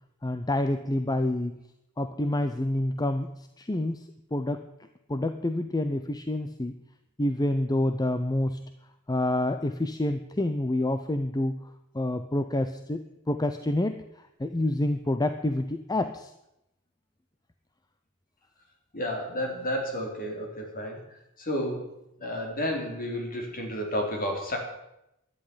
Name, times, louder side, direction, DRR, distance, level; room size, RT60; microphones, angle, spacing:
voice 1, 0.2-1.5 2.0-3.3 3.6-4.0 4.3-4.6 5.1-6.8 7.2-8.6 9.1-11.6 11.9-14.0 14.4-16.3, left 1 dB, 20° left, 9 dB, 0.7 m, -27 dB
voice 2, 18.9-21.0 21.4-21.9 22.2-24.6, equal, 40° left, 2 dB, 3.9 m, -31 dB
12.0 x 10.5 x 9.8 m, 0.86 s
head